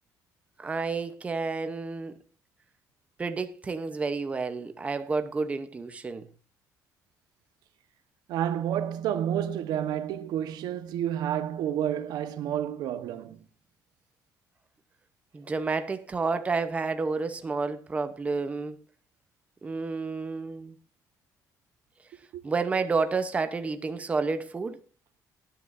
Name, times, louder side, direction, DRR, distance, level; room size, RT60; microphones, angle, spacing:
voice 1, 0.6-2.2 3.2-6.3 15.3-18.8 19.6-20.8 22.4-24.8, right 4 dB, 20° right, 0.9 m, -30 dB
voice 2, 8.3-13.4 22.3-22.4, right 10 dB, 80° right, 1.2 m, -30 dB
19.5 x 10.5 x 2.7 m
cardioid pair, 160°, 7 cm